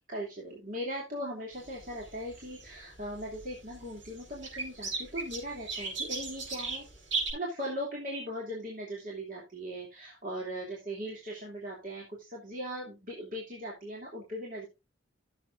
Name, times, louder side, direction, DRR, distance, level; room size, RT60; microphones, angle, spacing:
voice 1, 0.1-6.9 7.3-14.7, equal, 45° right, -3 dB, 2.8 m, -39 dB
sound 1, 1.5-7.3, right 3 dB, 70° right, 5.3 m, -38 dB
16.0 x 7.3 x 2.6 m, 0.25 s
head